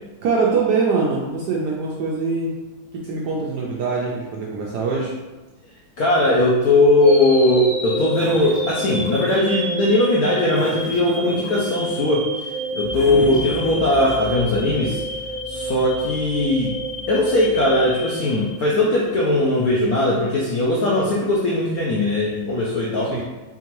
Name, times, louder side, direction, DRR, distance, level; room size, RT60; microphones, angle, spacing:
voice 1, 0.2-2.5 2.9-5.1 13.1-13.3 23.1-23.2, right 4 dB, 75° right, -3 dB, 0.9 m, -23 dB
voice 2, 6.0-15.0 15.5-16.8 17.1-23.1, left 1 dB, 80° left, -4 dB, 0.8 m, -19 dB
sound 1, 7.0-19.1, right 1 dB, 5° right, 0.7 m, -29 dB
Breathing, 8.1-9.5 10.5-11.9 12.9-14.3, left 1 dB, 50° left, 0.6 m, -34 dB
sound 2, 12.8-18.1, right 3 dB, 15° left, 1.1 m, -39 dB
3.7 x 3.6 x 2.9 m, 1.2 s
omnidirectional pair, 2.2 m